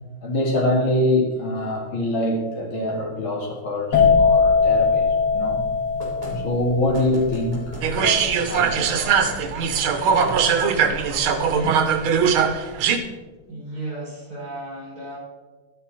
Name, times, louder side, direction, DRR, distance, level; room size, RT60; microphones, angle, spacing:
voice 1, 0.2-5.1 5.3-5.6 6.2-9.1, left 1 dB, 75° left, -1 dB, 2.9 m, -24 dB
sound 1, 3.9-11.5 11.8-12.3, left 5 dB, 60° left, 2.8 m, -21 dB
sound 2, 6.0-6.3 6.9-7.9 8.5-9.3 10.0-10.3, equal, 15° right, 3.7 m, -38 dB
sound 3, 7.8-13.0, right 6 dB, 90° right, 1.7 m, -21 dB
voice 2, 11.3-12.0 13.5-15.2, right 2 dB, 45° right, -5 dB, 4.9 m, -34 dB
12.0 x 9.1 x 4.2 m, 1.3 s
omnidirectional pair, 2.2 m